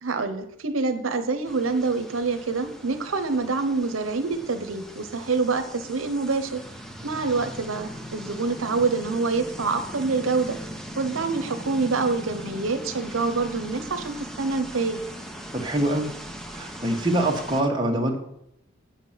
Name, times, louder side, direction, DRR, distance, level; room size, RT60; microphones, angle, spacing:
voice 1, 0.0-6.6 7.0-10.6 11.0-15.0, right 4 dB, 80° right, 8 dB, 0.9 m, -26 dB
sound 1, 1.4-17.6, equal, ahead, 0.7 m, -40 dB
voice 2, 15.5-16.1 16.5-18.2, right 1 dB, 20° right, 0 dB, 1.4 m, -24 dB
8.2 x 5.9 x 7.4 m, 0.76 s
head